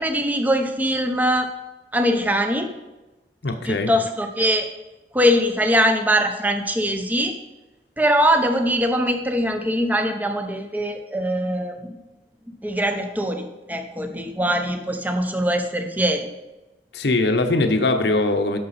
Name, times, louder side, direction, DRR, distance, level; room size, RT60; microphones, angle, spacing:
voice 1, 0.0-1.5 1.9-2.7 3.6-4.7 5.1-7.4 8.0-12.0 12.6-16.3, equal, 10° right, 6 dB, 0.7 m, -22 dB
voice 2, 3.4-3.9 16.9-18.6, left 2 dB, 70° left, 6 dB, 0.8 m, -21 dB
11.0 x 6.8 x 4.2 m, 1.1 s
head